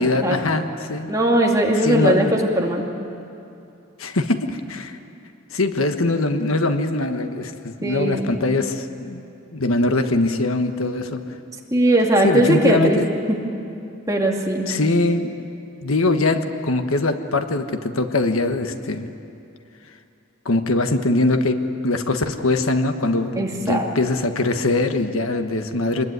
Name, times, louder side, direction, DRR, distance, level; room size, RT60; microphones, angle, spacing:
voice 1, 0.0-1.1 1.8-2.3 4.0-5.0 5.5-9.2 9.5-11.2 12.2-13.1 14.7-15.4 15.8-19.1 20.4-26.0, left 2 dB, 80° left, 7 dB, 1.4 m, -22 dB
voice 2, 1.1-2.8 6.1-6.2 7.8-8.3 11.7-13.0 13.3-13.4 14.1-14.7 23.4-23.9, right 1 dB, 15° right, -1 dB, 2.3 m, -19 dB
25.5 x 20.5 x 9.5 m, 2.7 s
head